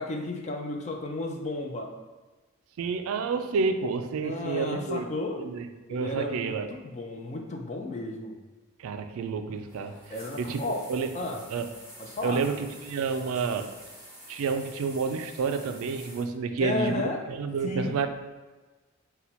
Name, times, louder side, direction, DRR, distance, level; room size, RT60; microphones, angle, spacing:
voice 1, 0.0-2.0 4.2-5.4 5.9-8.4 10.1-10.9 11.1-11.4 12.0-12.4 16.6-17.2 17.6-18.0, left 2 dB, 30° left, 2 dB, 0.4 m, -33 dB
voice 2, 2.8-5.1 5.4-5.6 5.9-6.7 8.8-9.9 10.4-10.6 10.9-11.1 11.5-11.7 12.2-13.7 14.3-17.0 17.3-18.1, right 5 dB, 70° right, 8 dB, 0.3 m, -29 dB
sound 1, 9.5-16.2, equal, 10° left, 1.0 m, -48 dB
4.1 x 2.2 x 4.2 m, 1.2 s
head